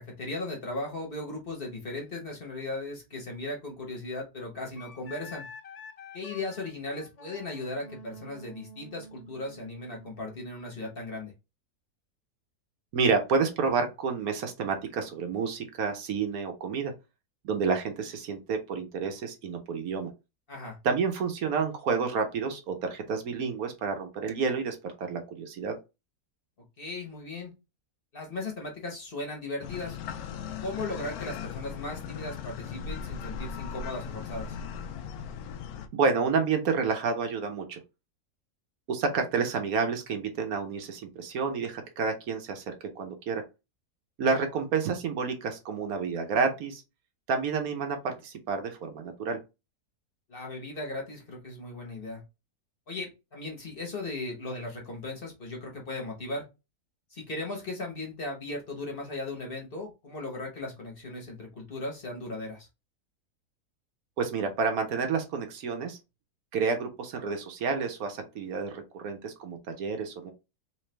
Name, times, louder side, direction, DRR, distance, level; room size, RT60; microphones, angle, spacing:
voice 1, 0.0-5.4 6.1-11.3 20.5-20.8 26.8-27.5 28.1-30.0 30.6-34.6 44.3-44.4 50.3-52.2 52.9-56.4 57.1-62.7, left 2 dB, 40° left, 1 dB, 1.1 m, -37 dB
Wind instrument woodwind instrument, 4.8-10.1, left 2 dB, 60° left, 0.4 m, -48 dB
voice 2, 12.9-16.9 17.4-20.1 20.8-25.8 35.9-37.8 38.9-43.4 44.2-46.8 47.3-49.4 64.2-66.0 66.5-70.3, right 5 dB, 70° right, 5 dB, 1.2 m, -29 dB
sound 1, 29.6-35.9, left 7 dB, 75° left, 1.0 m, -38 dB
3.2 x 3.2 x 3.2 m, 0.26 s
omnidirectional pair, 1.6 m